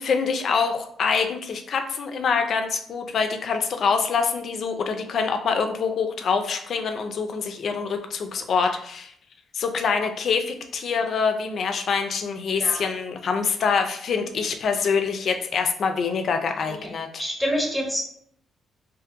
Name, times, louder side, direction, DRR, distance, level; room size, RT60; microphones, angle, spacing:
voice 1, 0.0-9.1 9.5-17.2, left 5 dB, 60° left, 6 dB, 0.4 m, -25 dB
voice 2, 17.2-18.0, equal, ahead, -1 dB, 0.9 m, -27 dB
2.6 x 2.4 x 2.5 m, 0.66 s
cardioid pair, 90°, 0 cm